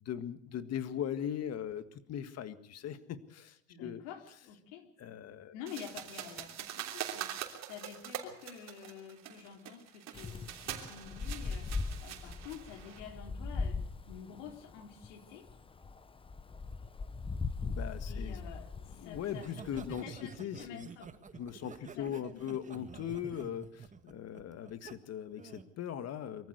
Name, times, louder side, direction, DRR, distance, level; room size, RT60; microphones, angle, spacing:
voice 1, 0.0-4.0 5.0-5.5 17.6-18.4 18.9-20.9 21.3-26.5, left 9 dB, 45° left, 12 dB, 1.8 m, -40 dB
voice 2, 3.7-4.9 5.5-15.5 18.1-19.5 19.7-21.1 21.9-22.5, left 8 dB, 90° left, 5 dB, 3.6 m, -49 dB
sound 1, 5.7-13.0, right 10 dB, 45° right, 3.2 m, -43 dB
Wind, 10.1-20.0, left 4 dB, 15° left, 1.0 m, -40 dB
Laughter, 19.3-24.9 25.4-25.7, right 5 dB, 20° right, 1.6 m, -49 dB
23.5 x 14.5 x 8.1 m, 0.66 s
supercardioid pair, 120°, 36 cm